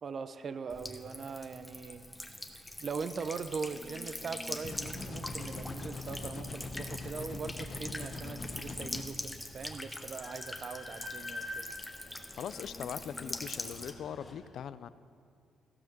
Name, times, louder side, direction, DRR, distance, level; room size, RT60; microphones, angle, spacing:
voice 1, 0.0-2.1 2.8-11.6, right 5 dB, 50° right, 12 dB, 0.5 m, -41 dB
Buzz / Water tap faucet / Trickle dribble, 0.7-13.9, left 1 dB, 10° left, 0.8 m, -43 dB
sound 1, 4.6-9.0, left 3 dB, 45° left, 0.9 m, -42 dB
Train, 9.4-9.5 9.8-14.3, left 2 dB, 30° left, 2.6 m, -46 dB
voice 2, 12.4-14.9, left 9 dB, 70° left, 15 dB, 0.3 m, -41 dB
15.5 x 5.7 x 6.0 m, 2.4 s
cardioid pair, 90°, 0 cm